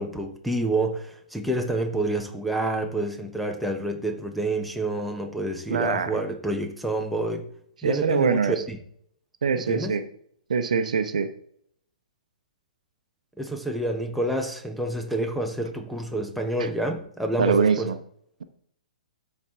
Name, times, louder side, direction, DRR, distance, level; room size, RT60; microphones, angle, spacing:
voice 1, 0.0-7.5 7.8-8.8 9.6-10.0 13.4-17.9, right 1 dB, ahead, 1.1 m, -28 dB
voice 2, 5.7-6.2 7.8-8.6 9.4-10.0 10.5-11.3 16.6-16.7 17.4-18.0, right 5 dB, 65° right, 0.9 m, -23 dB
13.0 x 4.6 x 3.8 m
figure-of-eight pair, 115°, 4 cm